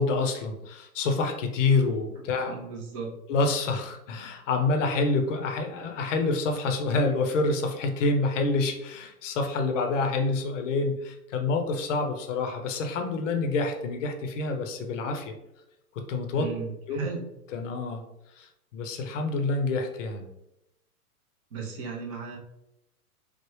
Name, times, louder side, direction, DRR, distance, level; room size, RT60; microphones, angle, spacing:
voice 1, 0.0-2.5 3.3-15.3 15.9-16.5 16.9-17.1 17.5-18.0 18.4-18.5 18.7-20.3, left 3 dB, 55° left, 5 dB, 0.6 m, -27 dB
voice 2, 2.4-3.1 16.3-17.3 21.5-22.4, right 5 dB, 25° right, -1 dB, 0.4 m, -36 dB
3.3 x 2.0 x 3.0 m, 0.88 s
figure-of-eight pair, 105°, 45 cm